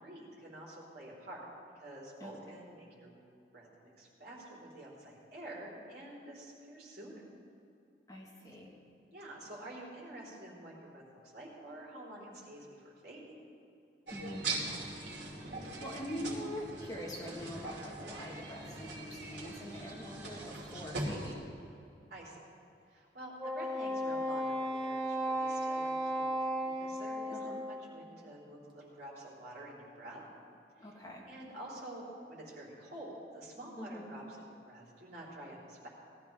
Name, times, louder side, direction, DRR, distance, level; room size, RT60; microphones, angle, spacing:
voice 1, 0.0-1.4 1.7-3.1 3.5-7.2 9.1-13.3 22.1-22.4 22.9-26.4 26.8-27.4 27.6-30.2 31.2-35.9, right 1 dB, 60° right, -6 dB, 4.0 m, -48 dB
voice 2, 8.1-8.8 14.1-14.5 15.5-21.5 27.3-27.6 30.8-31.3 33.8-34.1, equal, 20° left, -2 dB, 1.7 m, -44 dB
sound 1, 14.1-21.3, right 2 dB, 85° right, 2.6 m, -41 dB
Wind instrument woodwind instrument, 23.4-28.0, equal, 25° right, 1.8 m, -35 dB
18.5 x 13.5 x 3.6 m, 2.7 s
head